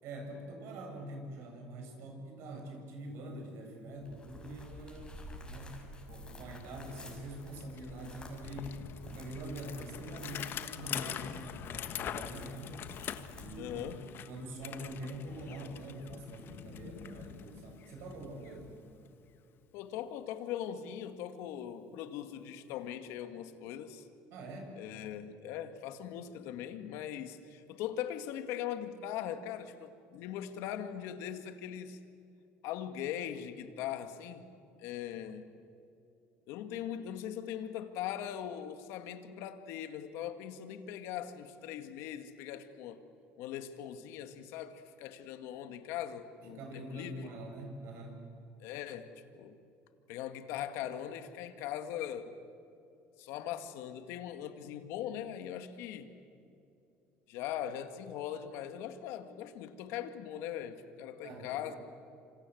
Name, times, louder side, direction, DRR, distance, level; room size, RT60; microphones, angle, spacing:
voice 1, 0.0-5.2 5.4-12.9 13.4-13.9 14.3-18.7 24.3-24.8 46.5-48.2 61.2-61.8, right 1 dB, 65° right, 3 dB, 7.9 m, -44 dB
sound 1, 4.0-13.9, left 1 dB, 20° left, 5.9 m, -50 dB
Bicycle, 6.1-6.2 6.5-19.4, left 10 dB, 50° left, 1.4 m, -44 dB
voice 2, 13.6-14.0 19.7-24.1 24.8-32.0 32.6-34.5 34.8-35.4 36.5-43.0 43.4-47.3 48.6-49.1 49.4-49.6 50.1-52.4 53.2-56.1 57.3-61.8, left 10 dB, 75° left, 9 dB, 2.1 m, -40 dB
27.0 x 27.0 x 8.0 m, 2.7 s
cardioid pair, 110°, 5 cm